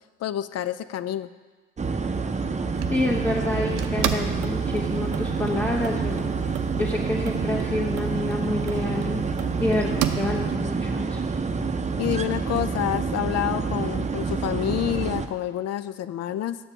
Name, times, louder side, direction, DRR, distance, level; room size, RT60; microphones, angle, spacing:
voice 1, 0.2-1.3 12.0-16.6, left 12 dB, 55° left, 14 dB, 0.5 m, -28 dB
sound 1, 1.8-15.3, right 4 dB, 25° right, 0.7 m, -28 dB
sound 2, 2.7-10.6, right 11 dB, 85° right, 0.5 m, -33 dB
voice 2, 2.9-6.3 6.8-9.2 9.6-11.2, left 2 dB, 5° left, -5 dB, 1.4 m, -28 dB
8.6 x 6.8 x 4.2 m, 1.4 s
hypercardioid pair, 50°, 31 cm